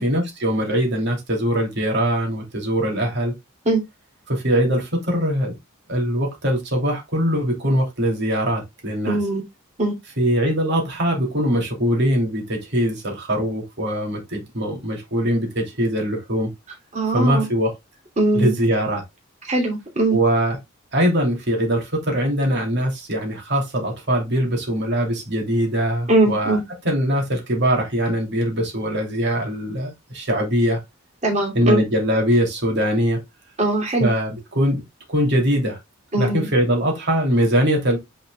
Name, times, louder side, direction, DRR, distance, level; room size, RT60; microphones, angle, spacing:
voice 1, 0.0-3.3 4.3-5.5 5.9-9.2 10.2-16.5 17.1-17.7 18.3-19.0 20.1-20.6 20.9-26.6 26.8-30.8 31.5-33.2 34.0-34.8 35.1-35.8 36.2-38.0, equal, 55° right, 2.9 m, -22 dB
voice 2, 9.1-9.4 9.8-9.9 16.9-17.5 18.2-18.5 19.4-20.2 26.1-26.6 31.2-31.8 33.6-34.1 36.1-36.5, right 2 dB, 35° right, 2.8 m, -20 dB
10.0 x 4.7 x 2.3 m
head